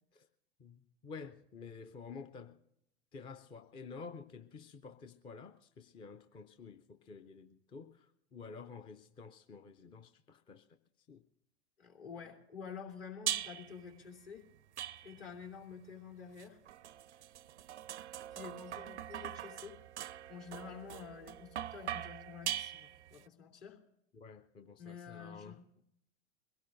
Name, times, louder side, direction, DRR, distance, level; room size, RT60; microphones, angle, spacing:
voice 1, 0.6-2.6 3.1-10.6 11.1-11.2 24.1-25.6, left 5 dB, 15° left, 0.4 m, -50 dB
voice 2, 11.8-14.4 15.0-16.6 18.3-19.8 20.0-23.8 24.8-25.6, left 6 dB, 55° left, 3.1 m, -49 dB
sound 1, 13.3-13.8 14.8-15.4 16.4-23.2, right 11 dB, 75° right, 0.5 m, -42 dB
23.0 x 17.0 x 2.6 m
figure-of-eight pair, 90°, 35 cm